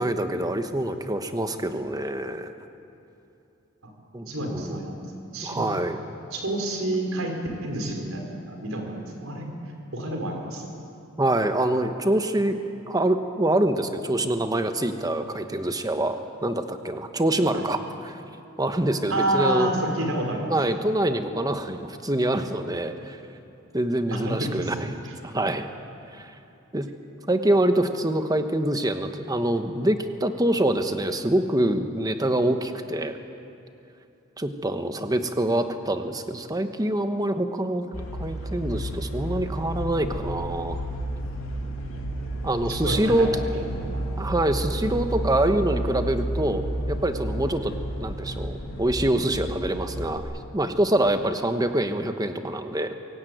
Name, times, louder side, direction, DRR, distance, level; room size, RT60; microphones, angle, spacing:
voice 1, 0.0-2.5 4.1-4.8 5.4-6.0 11.2-12.6 12.9-18.2 18.6-19.7 20.5-23.2 23.7-25.7 26.1-26.3 26.7-26.9 27.3-33.2 34.4-40.8 42.4-43.3 44.2-52.9, right 1 dB, 20° right, 8 dB, 1.2 m, -25 dB
voice 2, 4.3-5.1 5.3-5.7 6.3-7.4 7.6-9.5 9.9-10.7 17.5-17.7 19.1-20.5 24.1-24.7 25.0-25.1 42.7-44.1, right 1 dB, 85° right, 2 dB, 4.4 m, -29 dB
sound 1, 37.9-50.2, right 1 dB, 80° left, 3.0 m, -31 dB
24.5 x 16.5 x 9.3 m, 2.8 s
head